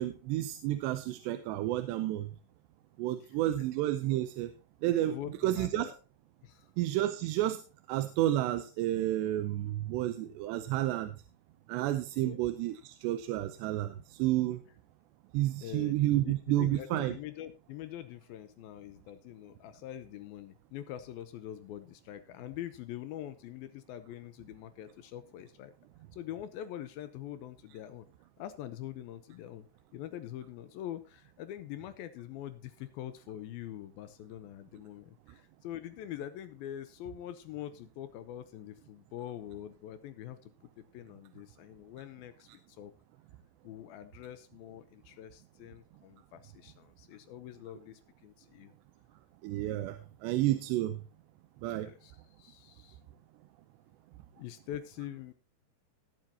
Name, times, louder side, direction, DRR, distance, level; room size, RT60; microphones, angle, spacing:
voice 1, 0.0-2.3 3.0-4.5 4.8-5.2 5.4-5.9 6.8-7.6 7.9-11.1 11.7-14.6 15.3-17.2 49.4-50.0 50.2-51.0 51.6-51.9, right 14 dB, 90° right, 9 dB, 2.9 m, -30 dB
voice 2, 4.8-5.9 6.4-6.7 12.2-12.5 15.6-25.7 26.1-28.1 28.4-29.7 29.9-40.5 40.8-42.9 43.6-48.7 50.0-50.1 51.8-53.0 54.4-55.3, left 12 dB, 80° left, 11 dB, 2.3 m, -44 dB
19.0 x 7.6 x 2.8 m, 0.33 s
omnidirectional pair, 4.9 m